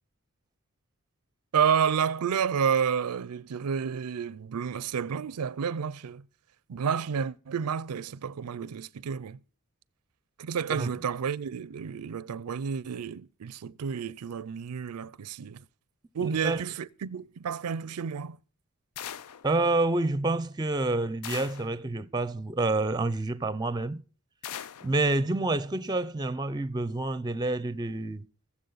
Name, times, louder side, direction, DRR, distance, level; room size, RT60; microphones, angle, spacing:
voice 1, 1.5-6.2 6.7-9.4 10.4-15.6 16.1-18.4, right 7 dB, 85° right, 0.5 m, -30 dB
voice 2, 16.2-16.6 19.4-24.0 24.8-28.2, right 2 dB, 20° right, 0.5 m, -28 dB
sound 1, 19.0-19.5 21.2-21.8 24.4-24.9, left 9 dB, 90° left, 0.5 m, -39 dB
21.5 x 7.3 x 4.0 m
head